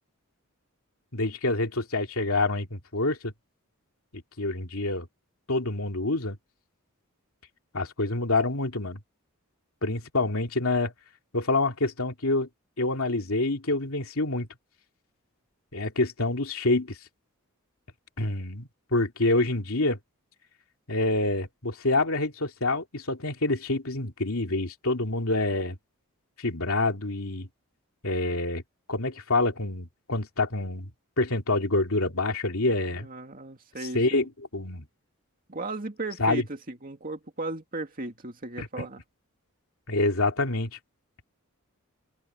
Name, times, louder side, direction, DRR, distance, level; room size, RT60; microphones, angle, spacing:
voice 1, 1.1-3.3 4.1-5.1 5.5-6.4 7.7-9.0 9.8-10.9 11.3-12.5 12.8-14.5 15.7-17.0 18.2-20.0 20.9-25.8 26.4-27.5 28.0-28.6 28.9-30.9 31.2-33.1 33.9-34.9 36.2-36.4 38.6-38.9 39.9-40.8, left 2 dB, 70° left, 2.7 m, -27 dB
voice 2, 32.9-34.3 35.5-39.0, right 2 dB, 40° right, 2.3 m, -36 dB
open air
head